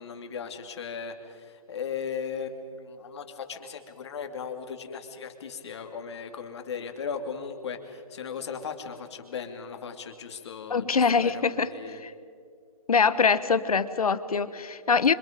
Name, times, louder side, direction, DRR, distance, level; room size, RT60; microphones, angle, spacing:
voice 1, 0.0-12.0, left 6 dB, 50° left, 5 dB, 2.6 m, -37 dB
voice 2, 10.7-12.1 12.9-15.1, left 5 dB, 80° left, 13 dB, 1.4 m, -24 dB
27.5 x 25.5 x 5.2 m, 2.4 s
hypercardioid pair, 160°, 19 cm